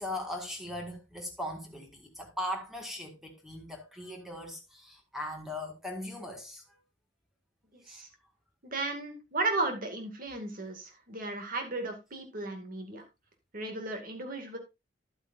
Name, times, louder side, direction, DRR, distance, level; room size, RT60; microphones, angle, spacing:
voice 1, 0.0-6.6 7.8-8.1, left 1 dB, ahead, 1.9 m, -39 dB
voice 2, 8.6-13.0 13.5-14.6, right 2 dB, 45° right, 2.2 m, -35 dB
11.5 x 8.5 x 2.6 m
head